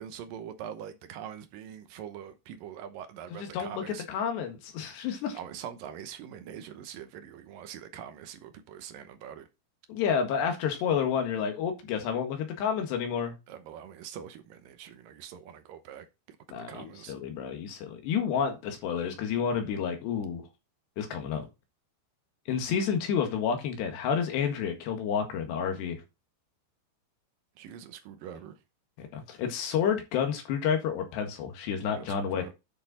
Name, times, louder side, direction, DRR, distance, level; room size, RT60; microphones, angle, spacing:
voice 1, 0.0-4.1 5.3-9.5 13.5-17.1 27.6-28.6 31.9-32.5, right 9 dB, 75° right, 2.1 m, -43 dB
voice 2, 3.4-5.4 9.9-13.3 16.5-20.4 21.0-21.5 22.5-26.0 29.0-32.5, left 7 dB, 70° left, 3.8 m, -30 dB
10.0 x 6.6 x 4.2 m
omnidirectional pair, 5.2 m